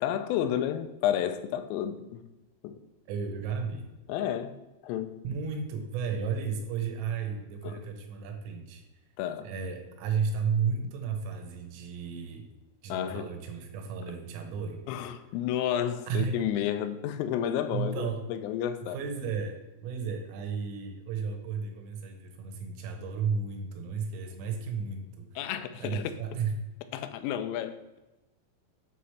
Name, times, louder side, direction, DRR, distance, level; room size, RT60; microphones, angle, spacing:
voice 1, 0.0-2.2 2.6-2.8 4.1-5.2 7.6-7.8 9.2-9.5 12.9-13.3 14.9-19.0 25.4-26.1 26.9-28.0, left 10 dB, 85° left, 3.1 m, -31 dB
voice 2, 3.1-3.9 5.2-8.8 9.4-12.5 12.8-14.8 16.1-16.4 17.7-18.2 18.9-25.3 25.8-26.5, right 6 dB, 85° right, 3.6 m, -33 dB
8.1 x 3.2 x 5.6 m
omnidirectional pair, 5.8 m